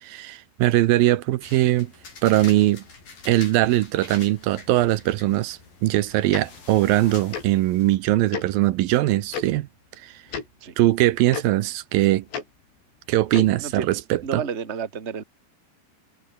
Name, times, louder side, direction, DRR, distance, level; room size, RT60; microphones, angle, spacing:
voice 1, 0.0-1.9 2.2-2.8 3.3-9.7 10.0-10.1 10.8-12.3 13.1-14.4, right 16 dB, 75° right, 2.4 m, -21 dB
sound 1, 1.4-8.0, left 4 dB, 55° left, 8.3 m, -45 dB
Tick-tock, 6.3-6.4 7.3-7.5 8.3-8.5 9.3-9.4 10.3-10.5 11.3-11.4 12.3-12.4 13.3-13.5, left 6 dB, 85° left, 6.9 m, -30 dB
voice 2, 14.2-15.2, right 6 dB, 30° right, 1.2 m, -31 dB
omnidirectional pair, 4.8 m